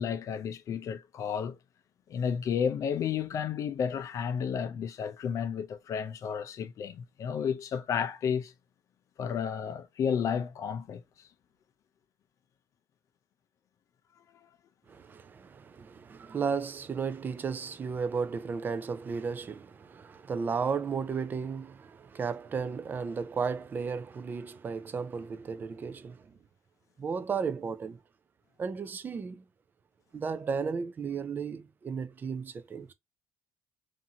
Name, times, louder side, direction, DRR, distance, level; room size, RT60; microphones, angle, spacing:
voice 1, 0.0-1.6 2.1-8.5 9.2-11.0, left 7 dB, 45° left, 0.5 m, -32 dB
voice 2, 14.9-26.3 27.0-28.0 28.6-29.4 30.1-32.9, right 5 dB, 25° right, 0.4 m, -34 dB
2.7 x 2.5 x 2.7 m
cardioid pair, 125°, 7 cm